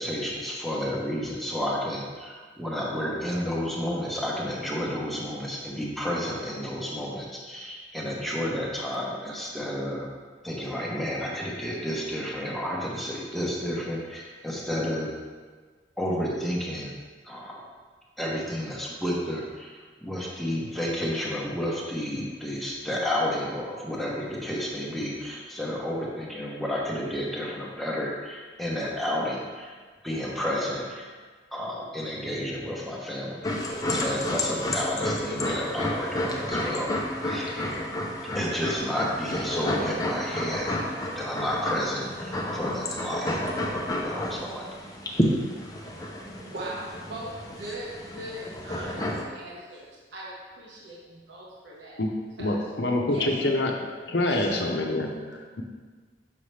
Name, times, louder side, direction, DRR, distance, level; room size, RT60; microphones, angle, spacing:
voice 1, 0.0-10.1 10.4-15.2 16.0-16.9 17.2-17.6 18.2-29.7 30.0-31.1 31.5-33.4 33.9-37.5 38.3-40.8 41.2-43.4 44.0-44.7, equal, ahead, -4 dB, 1.0 m, -31 dB
sound 1, 33.4-49.2, left 1 dB, 20° left, 0.7 m, -30 dB
voice 2, 45.9-52.0 52.4-52.7 53.1-53.3 54.2-54.6, right 1 dB, 80° right, -5 dB, 1.3 m, -40 dB
voice 3, 52.4-53.7 54.1-55.6, left 2 dB, 70° left, 2 dB, 0.8 m, -26 dB
6.6 x 5.6 x 3.3 m, 1.5 s
head